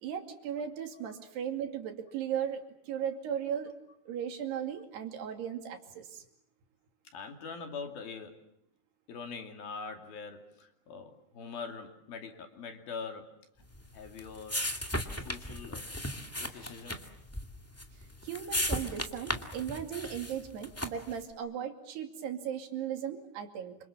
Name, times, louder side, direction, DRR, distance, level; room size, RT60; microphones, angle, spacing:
voice 1, 0.0-3.7 4.1-6.2 18.2-23.8, right 9 dB, 85° right, 5 dB, 4.6 m, -37 dB
voice 2, 7.1-8.5 9.1-13.5 13.9-14.7 15.2-15.9 16.4-17.0, left 5 dB, 65° left, 5 dB, 4.4 m, -43 dB
sound 1, 13.7-21.2, left 1 dB, 15° left, 0.5 m, -37 dB
28.5 x 26.5 x 7.4 m, 0.76 s
omnidirectional pair, 4.7 m